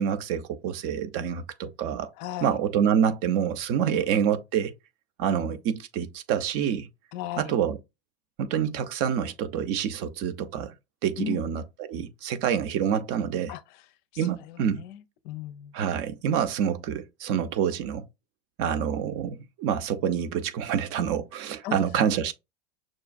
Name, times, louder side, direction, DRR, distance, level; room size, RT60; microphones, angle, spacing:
voice 1, 0.0-2.1 2.4-4.7 5.2-6.9 7.4-7.8 8.4-10.7 11.0-13.6 14.2-14.8 15.7-18.0 18.6-22.3, right 8 dB, 45° right, 0.6 m, -27 dB
voice 2, 2.2-2.6 3.8-4.0 7.1-7.6 11.2-11.4 13.5-13.8 14.2-15.7 21.6-21.8, left 11 dB, 45° left, 0.5 m, -36 dB
6.1 x 2.3 x 2.2 m
hypercardioid pair, 95°, 32 cm